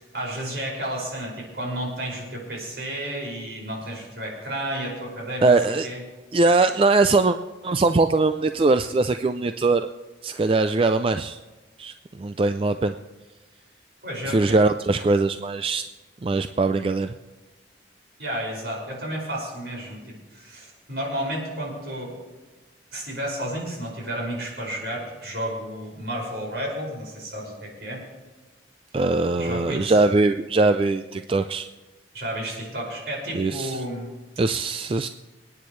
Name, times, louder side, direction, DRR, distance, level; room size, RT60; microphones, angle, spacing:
voice 1, 0.0-5.6 5.8-6.0 14.0-14.6 18.2-22.1 22.9-28.0 29.4-30.0 32.1-34.1, right 1 dB, 70° right, -2 dB, 5.7 m, -32 dB
voice 2, 5.4-5.9 6.3-7.4 7.6-9.9 10.2-11.4 11.8-12.9 14.3-15.8 16.2-17.1 28.9-31.7 33.3-33.8 34.4-35.1, right 3 dB, 30° right, 9 dB, 0.3 m, -21 dB
27.5 x 9.7 x 3.2 m, 1.2 s
head